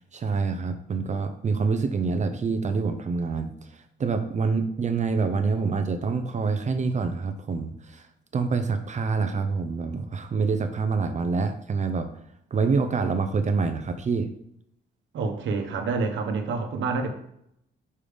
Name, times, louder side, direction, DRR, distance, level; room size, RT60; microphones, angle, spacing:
voice 1, 0.0-8.0 8.3-12.1 12.5-14.3, right 4 dB, 35° right, 8 dB, 0.6 m, -26 dB
voice 2, 15.1-17.1, right 4 dB, 70° right, 4 dB, 1.0 m, -27 dB
5.5 x 3.4 x 5.0 m, 0.75 s
cardioid pair, 90°, 20 cm